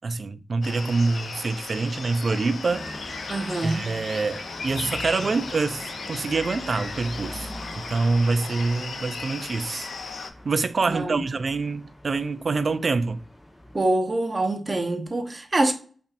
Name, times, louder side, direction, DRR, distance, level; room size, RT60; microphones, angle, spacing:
voice 1, 0.0-2.9 3.6-7.5 7.8-9.9 10.4-13.2, right 3 dB, 55° right, 0.3 m, -26 dB
sound 1, 0.6-10.3, left 4 dB, 70° left, 0.5 m, -36 dB
sound 2, 2.7-13.8, left 1 dB, 15° left, 1.1 m, -42 dB
voice 2, 3.3-3.9 10.9-11.2 13.7-15.7, right 2 dB, 35° right, 0.9 m, -25 dB
5.3 x 2.7 x 2.5 m
cardioid pair, 55°, 0 cm